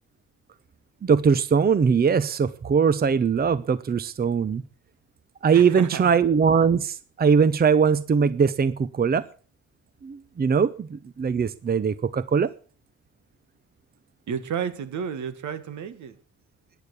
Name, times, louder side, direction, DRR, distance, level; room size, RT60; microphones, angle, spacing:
voice 1, 1.0-4.6 5.4-9.2 10.0-12.5, right 6 dB, 30° right, 0.8 m, -21 dB
voice 2, 5.5-6.1 14.3-16.2, right 7 dB, 75° right, 2.1 m, -31 dB
14.0 x 10.0 x 8.2 m
cardioid pair, 90°, 30 cm